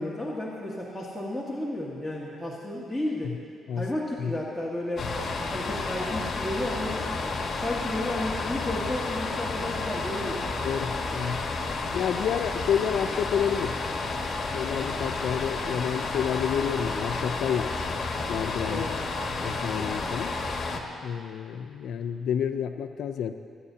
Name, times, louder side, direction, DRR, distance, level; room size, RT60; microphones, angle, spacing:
voice 1, 0.0-3.3 3.7-5.1 5.5-7.1 7.5-10.5 18.6-19.0, left 1 dB, ahead, -6 dB, 1.8 m, -32 dB
sound 1, 5.0-20.8, left 3 dB, 45° left, 1.4 m, -31 dB
voice 2, 10.6-11.4 11.9-13.7 14.5-18.0 18.3-18.8 19.4-20.3 21.0-23.3, left 8 dB, 75° left, 8 dB, 0.5 m, -29 dB
28.0 x 9.8 x 2.9 m, 2.4 s
cardioid pair, 90°, 0 cm